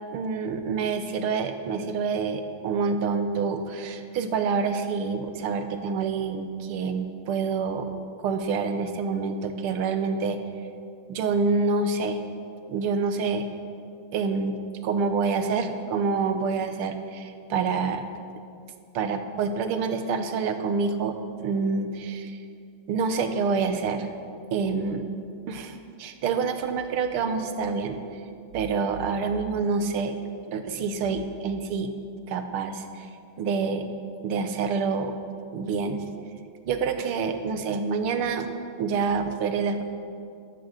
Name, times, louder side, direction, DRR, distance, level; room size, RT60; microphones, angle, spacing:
voice 1, 0.1-7.9 8.2-10.4 11.1-12.2 12.7-13.5 14.1-14.6 14.8-18.0 18.9-22.4 22.9-24.1 24.5-25.0 25.5-28.0 28.5-30.2 30.5-31.9 32.3-33.1 33.4-33.9 34.2-35.1 35.5-36.1 36.6-38.5 38.7-39.8, right 5 dB, 80° right, 8 dB, 1.8 m, -27 dB
13.0 x 12.0 x 6.4 m, 2.4 s
omnidirectional pair, 2.4 m